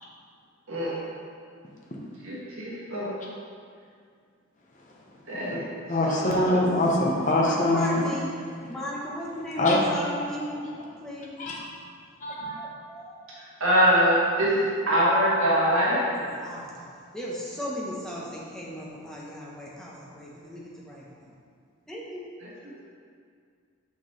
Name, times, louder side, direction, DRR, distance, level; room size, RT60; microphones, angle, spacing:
voice 1, 0.7-1.0 2.2-3.1 5.3-5.6 6.2-6.6 13.6-16.1, equal, 75° right, -7 dB, 1.5 m, -23 dB
voice 2, 5.9-8.1 9.6-9.9 11.4-11.6 12.2-12.6, left 1 dB, 35° left, -3 dB, 0.9 m, -23 dB
voice 3, 7.4-8.4 8.7-11.4 12.6-13.2 16.0-21.3 21.9-22.3, equal, 5° left, -5 dB, 0.9 m, -36 dB
6.4 x 5.9 x 3.2 m, 2.2 s
head